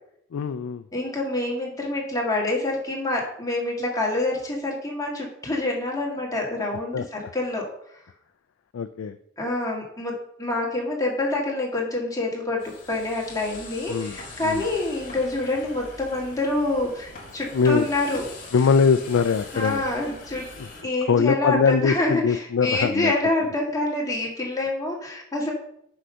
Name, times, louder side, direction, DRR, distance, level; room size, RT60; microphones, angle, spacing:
voice 1, 0.3-0.8 6.9-7.0 8.7-9.2 13.9-14.2 14.4-14.6 17.5-17.9 18.5-19.8 20.6-20.7 21.1-23.1, left 5 dB, 75° left, 9 dB, 0.4 m, -22 dB
voice 2, 0.9-8.0 9.4-18.2 19.5-20.5 20.8-25.5, left 2 dB, 15° left, -2 dB, 1.8 m, -27 dB
sound 1, 12.6-20.8, left 3 dB, 40° left, 2.0 m, -42 dB
6.3 x 5.6 x 5.5 m, 0.72 s
head